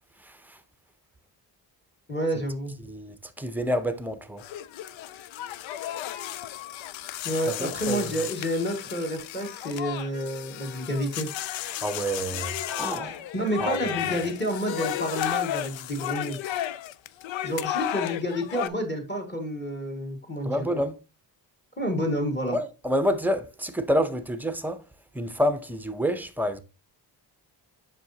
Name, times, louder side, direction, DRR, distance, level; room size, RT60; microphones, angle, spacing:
voice 1, 2.1-2.7 7.2-11.3 13.0-16.4 17.4-20.7 21.8-22.6, equal, 25° left, 1.8 m, -29 dB
voice 2, 2.9-4.4 7.6-8.1 11.8-13.2 13.6-14.1 20.4-21.0 22.5-24.8 25.1-26.6, equal, 5° right, 0.6 m, -28 dB
sound 1, 4.4-18.7, left 12 dB, 85° left, 0.5 m, -33 dB
7.5 x 5.8 x 2.7 m
cardioid pair, 115°, 45 cm